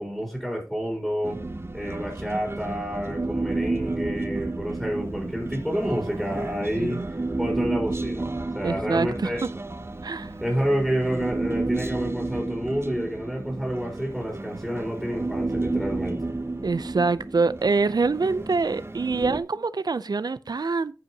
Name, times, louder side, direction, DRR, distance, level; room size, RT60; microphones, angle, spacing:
voice 1, 0.0-1.4 1.7-7.0 7.4-8.3 8.5-9.4 10.4-16.3, equal, 5° right, 3.4 m, -29 dB
Human voice, 1.2-19.4, right 2 dB, 35° right, 0.7 m, -31 dB
voice 2, 8.6-9.3 10.0-10.3 16.6-20.9, right 4 dB, 75° right, 0.4 m, -25 dB
14.0 x 5.5 x 2.8 m
wide cardioid pair, 60°, 7 cm